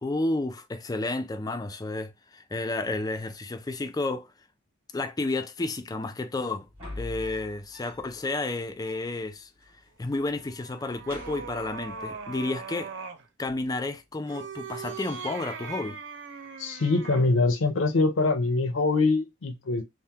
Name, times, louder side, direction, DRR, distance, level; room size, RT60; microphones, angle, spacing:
voice 1, 0.0-4.3 4.9-6.7 7.0-9.5 10.0-12.9 13.4-16.0, left 2 dB, 20° left, 0.3 m, -31 dB
sound 1, 6.6-8.2 8.5-8.6 8.8-9.8 10.1-10.5 10.8-12.2 13.5-13.8, left 1 dB, 30° right, 1.7 m, -44 dB
sound 2, 10.3-13.3 14.2-17.4, right 5 dB, 65° right, 0.6 m, -40 dB
voice 2, 16.6-19.8, left 3 dB, 75° left, 0.5 m, -24 dB
3.4 x 2.1 x 2.7 m
head